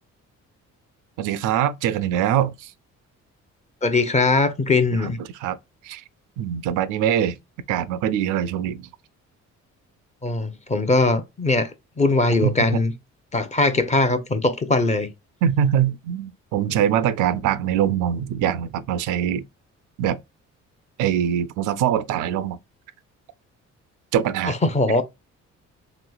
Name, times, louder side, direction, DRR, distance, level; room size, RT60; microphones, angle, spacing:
voice 1, 1.2-2.7 5.0-5.1 5.4-5.6 5.8-6.0 6.4-7.4 7.7-8.9 12.4-12.5 15.4-19.4 20.0-20.2 21.0-22.6 24.1-24.6, right 9 dB, 90° right, 0.5 m, -23 dB
voice 2, 3.8-5.2 10.2-11.7 12.0-12.9 13.3-15.1 24.4-25.0, left 3 dB, 25° left, 0.6 m, -20 dB
3.1 x 3.0 x 2.3 m
cardioid pair, 90°, 30 cm